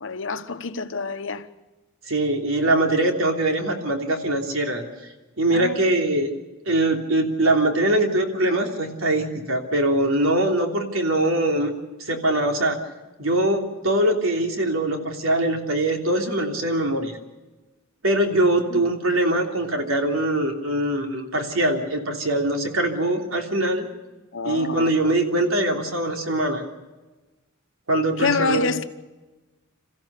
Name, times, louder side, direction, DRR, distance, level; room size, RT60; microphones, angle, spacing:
voice 1, 0.0-1.5 5.5-5.9 18.7-18.8 24.3-25.1 28.2-28.8, left 4 dB, 70° left, 1.2 m, -27 dB
voice 2, 2.1-4.8 5.4-6.3 6.6-11.7 12.0-12.8 13.2-17.2 18.0-23.9 24.4-26.6 27.9-28.7, right 1 dB, 90° right, 3.2 m, -22 dB
27.5 x 15.0 x 6.8 m
head